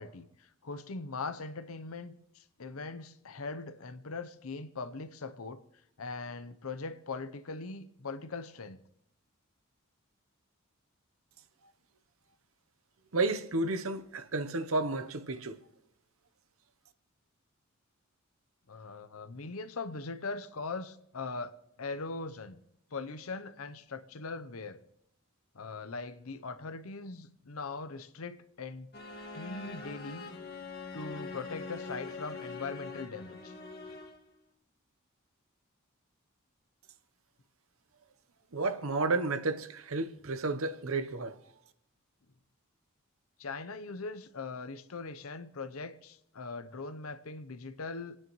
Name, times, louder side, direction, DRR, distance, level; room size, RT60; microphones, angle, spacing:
voice 1, 0.0-5.6 6.0-8.8 18.7-22.6 22.9-24.8 25.5-28.9 29.3-30.3 30.9-33.5 43.4-48.2, left 4 dB, 80° left, 0.8 m, -41 dB
voice 2, 13.1-15.6 38.5-41.4, right 3 dB, 75° right, 0.9 m, -32 dB
sound 1, 28.9-34.3, left 4 dB, 50° left, 1.7 m, -43 dB
29.0 x 9.7 x 3.1 m
head